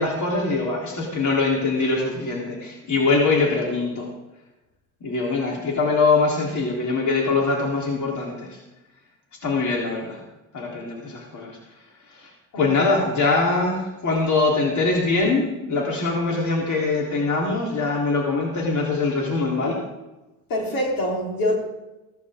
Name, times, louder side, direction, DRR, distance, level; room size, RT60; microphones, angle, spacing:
voice 1, 0.0-4.1 5.0-8.6 9.4-10.2 10.5-11.6 12.1-12.3 12.6-19.9, left 3 dB, 50° left, -2 dB, 3.8 m, -23 dB
voice 2, 20.5-21.6, left 1 dB, 65° left, -1 dB, 4.2 m, -24 dB
15.0 x 14.0 x 3.8 m, 1.0 s
supercardioid pair, 70°, 38 cm